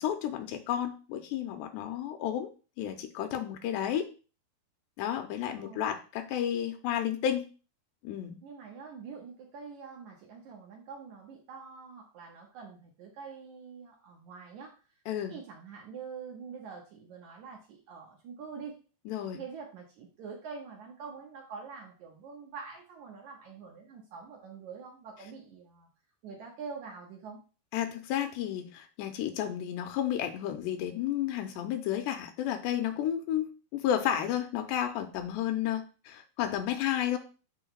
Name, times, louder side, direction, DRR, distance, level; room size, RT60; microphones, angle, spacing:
voice 1, 0.0-2.5 2.8-4.1 5.0-7.4 8.0-8.4 15.1-15.3 19.1-19.4 27.7-37.2, left 10 dB, 85° left, 6 dB, 2.7 m, -32 dB
voice 2, 8.4-14.7 15.1-18.8 19.2-25.9 26.2-27.4, right 5 dB, 90° right, 0 dB, 1.6 m, -45 dB
14.0 x 4.9 x 2.2 m, 0.35 s
omnidirectional pair, 5.1 m